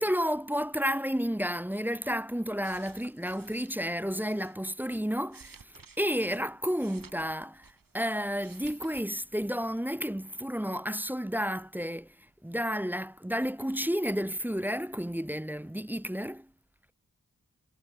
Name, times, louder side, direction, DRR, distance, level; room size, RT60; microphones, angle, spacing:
voice 1, 0.0-12.2 12.4-16.5, equal, 5° right, 0.6 m, -31 dB
sound 1, 2.4-4.6 5.1-8.0 8.3-9.1 9.4-9.6, right 5 dB, 80° right, 2.8 m, -55 dB
wide cardioid pair, 70°, 33 cm